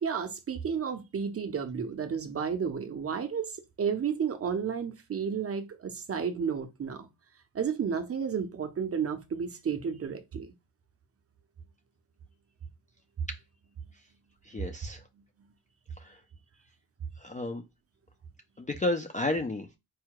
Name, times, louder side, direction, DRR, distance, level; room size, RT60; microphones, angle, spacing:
voice 1, 0.0-7.1 7.5-10.5, right 6 dB, 35° right, 0.6 m, -32 dB
voice 2, 14.5-15.0 16.0-16.2 17.2-17.6 18.6-19.7, left 2 dB, 20° left, 0.3 m, -32 dB
4.7 x 2.1 x 4.5 m
wide cardioid pair, 175°, 40 cm